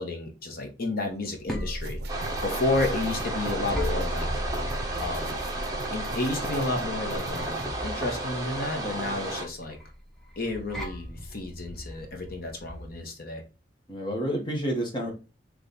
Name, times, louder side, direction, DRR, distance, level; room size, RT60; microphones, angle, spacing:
voice 1, 0.0-2.0 2.4-4.3 5.0-5.4 5.9-9.8 10.4-13.4, left 2 dB, 60° left, 3 dB, 1.2 m, -31 dB
sound 1, 1.1-13.0, equal, 5° left, 0.9 m, -36 dB
sound 2, 1.8-7.7, right 3 dB, 65° right, 0.5 m, -43 dB
sound 3, 2.1-9.5, right 2 dB, 20° right, 1.0 m, -33 dB
voice 2, 13.9-15.1, equal, 30° left, 0 dB, 1.3 m, -30 dB
3.4 x 3.3 x 4.0 m, 0.30 s
head